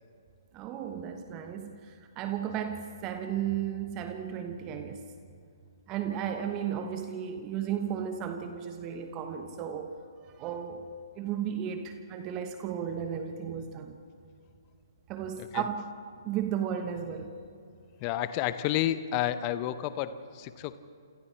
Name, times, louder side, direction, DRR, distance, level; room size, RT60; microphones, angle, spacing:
voice 1, 0.5-5.0 5.9-10.0 10.3-10.8 11.2-14.0 15.1-15.8 16.2-17.3, right 9 dB, 25° right, 6 dB, 1.2 m, -34 dB
voice 2, 18.0-20.8, left 12 dB, 25° left, 13 dB, 0.8 m, -30 dB
28.0 x 27.5 x 3.4 m, 2.3 s
figure-of-eight pair, 130°, 2 cm